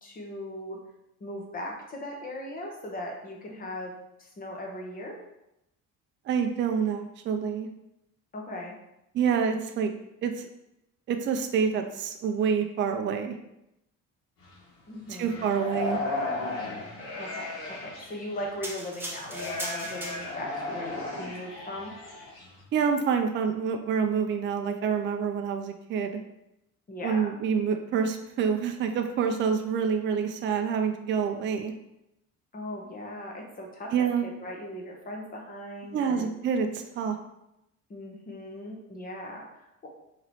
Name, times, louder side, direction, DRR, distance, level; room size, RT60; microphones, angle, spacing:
voice 1, 0.0-0.8 1.2-3.9 4.2-5.2 8.3-8.7 14.9-15.5 17.2-21.9 26.9-27.3 32.5-33.9 34.2-36.3 37.9-39.9, left 1 dB, 25° left, 0 dB, 0.9 m, -39 dB
voice 2, 6.3-7.7 9.1-9.9 10.2-10.5 11.1-13.4 15.1-16.0 22.7-26.2 27.0-31.7 33.9-34.3 35.9-37.2, right 6 dB, 35° right, 5 dB, 0.4 m, -27 dB
sound 1, 14.4-14.5 15.1-18.6 19.2-22.6, left 2 dB, 90° left, 1.3 m, -35 dB
sound 2, 18.6-20.6 21.2-21.4, right 1 dB, 5° right, 0.7 m, -38 dB
3.0 x 2.9 x 4.0 m, 0.86 s
cardioid pair, 125°, 32 cm